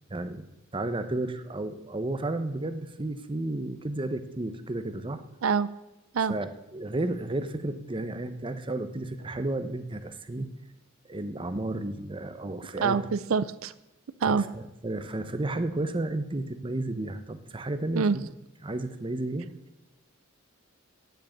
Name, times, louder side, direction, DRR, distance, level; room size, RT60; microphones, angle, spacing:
voice 1, 0.1-0.4 0.7-5.2 6.3-10.5 11.0-13.0 14.3-18.3 18.6-19.5, right 2 dB, 25° right, 10 dB, 0.8 m, -32 dB
voice 2, 12.8-13.7 14.2-14.4 18.0-18.2, right 5 dB, 85° right, 15 dB, 0.5 m, -25 dB
9.6 x 7.9 x 8.7 m, 0.97 s
head